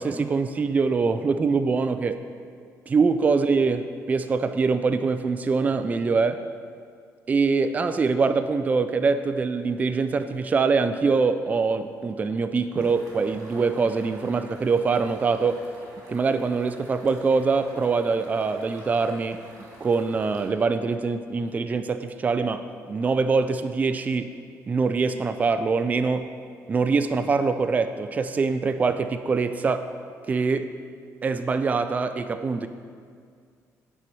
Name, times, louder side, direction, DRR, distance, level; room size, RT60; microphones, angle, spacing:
voice 1, 0.0-2.2 2.9-6.4 7.3-15.6 16.1-19.4 19.8-24.3 24.7-26.3 26.7-29.9 30.3-30.7 31.2-32.7, right 4 dB, 25° right, 10 dB, 0.3 m, -24 dB
sound 1, 12.8-20.5, right 1 dB, 70° right, 2.3 m, -49 dB
9.9 x 4.5 x 5.3 m, 2.1 s
cardioid pair, 120°, 6 cm